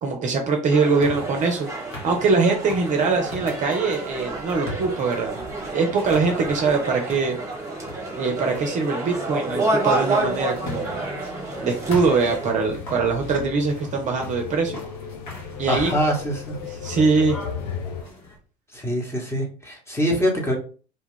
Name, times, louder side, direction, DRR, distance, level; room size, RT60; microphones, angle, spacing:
voice 1, 0.0-1.7 2.0-7.4 8.1-11.1 11.6-14.8 15.6-16.0 16.6-17.4, right 4 dB, 35° right, 3 dB, 0.6 m, -22 dB
sound 1, 0.7-12.5, right 2 dB, 15° right, 1.1 m, -29 dB
sound 2, 1.0-18.4, left 1 dB, 60° left, 1.2 m, -39 dB
sound 3, 10.9-18.0, left 7 dB, 80° left, 0.4 m, -36 dB
voice 2, 15.7-16.6 18.7-20.6, equal, 10° left, -1 dB, 1.1 m, -24 dB
2.6 x 2.3 x 3.5 m, 0.39 s
hypercardioid pair, 70°, 21 cm